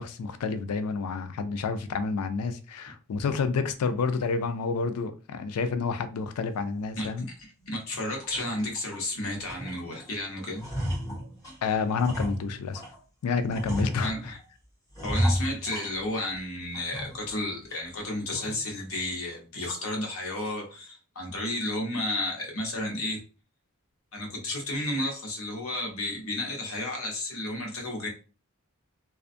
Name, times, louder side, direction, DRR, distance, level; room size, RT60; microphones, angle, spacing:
voice 1, 0.0-7.3 11.6-12.8 13.2-14.3, left 4 dB, 85° left, 0.4 m, -29 dB
voice 2, 7.0-10.6 14.0-14.4 15.0-23.2 24.1-28.1, left 1 dB, 70° left, 0.9 m, -32 dB
sound 1, 7.0-7.1 7.6-7.7 8.2-9.1 9.4-10.1 10.4-13.0 13.5-14.4 14.9-16.4 16.7-17.4 17.7-17.8 18.3-18.7, equal, 15° left, 1.1 m, -33 dB
2.4 x 2.3 x 2.5 m
head